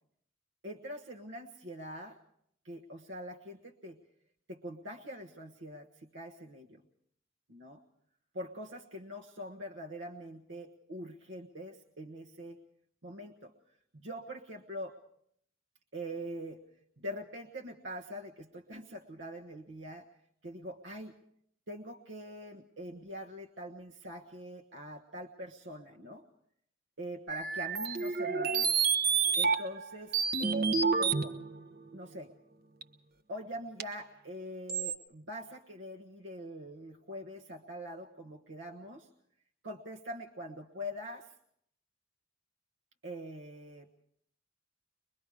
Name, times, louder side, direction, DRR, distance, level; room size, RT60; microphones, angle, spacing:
voice 1, 0.6-2.2 2.6-4.0 4.5-6.8 7.5-7.8 8.3-12.6 13.0-13.5 13.9-15.0 15.9-16.6 17.0-20.1 20.4-21.2 21.7-26.2 27.0-28.7 29.4-31.4 31.9-32.3 33.3-39.1 39.6-41.3 43.0-44.1, equal, 75° right, 2 dB, 1.3 m, -43 dB
sound 1, 27.3-29.8 30.1-31.6 32.8-32.9 33.8-33.9 34.7-34.9, right 5 dB, 55° right, 1.1 m, -29 dB
24.0 x 22.5 x 4.9 m, 0.69 s
head